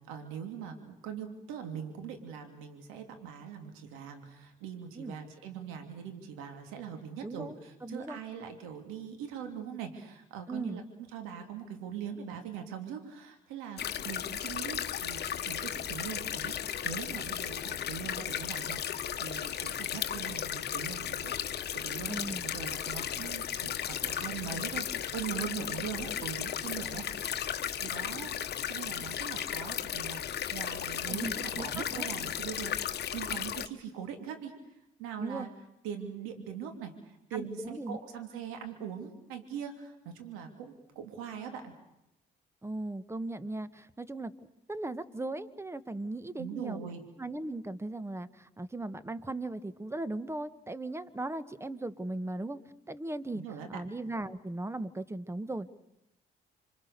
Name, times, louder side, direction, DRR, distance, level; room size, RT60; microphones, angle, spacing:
voice 1, 0.1-10.8 11.1-27.1 27.4-35.5 35.8-41.7 46.4-47.0 53.3-53.8, right 8 dB, 90° right, 6 dB, 3.0 m, -42 dB
voice 2, 7.2-7.5 7.8-8.2 10.5-10.8 22.1-22.4 31.1-32.1 35.2-35.5 37.3-38.0 42.6-44.3 44.7-46.8 47.2-52.6 52.9-53.4 53.7-55.8, right 2 dB, 15° right, 14 dB, 1.4 m, -38 dB
sound 1, 13.8-33.7, left 9 dB, 55° left, 1.2 m, -35 dB
27.5 x 24.5 x 6.8 m, 0.88 s
supercardioid pair, 70°, 20 cm